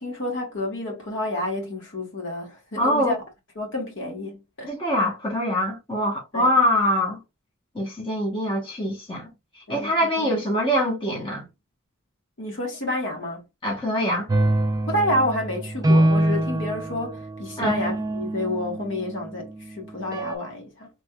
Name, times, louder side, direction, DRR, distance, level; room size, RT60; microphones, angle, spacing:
voice 1, 0.0-3.2 3.5-4.7 6.3-6.5 9.7-10.4 12.4-13.4 14.9-20.9, left 1 dB, 60° left, 1.5 m, -29 dB
voice 2, 2.8-3.2 4.7-7.2 7.7-9.3 9.7-11.4 13.6-14.3 17.6-17.7, equal, 25° left, 1.0 m, -24 dB
sound 1, 14.3-19.4 20.1-20.4, right 1 dB, 15° right, 0.3 m, -24 dB
3.4 x 3.2 x 2.2 m
head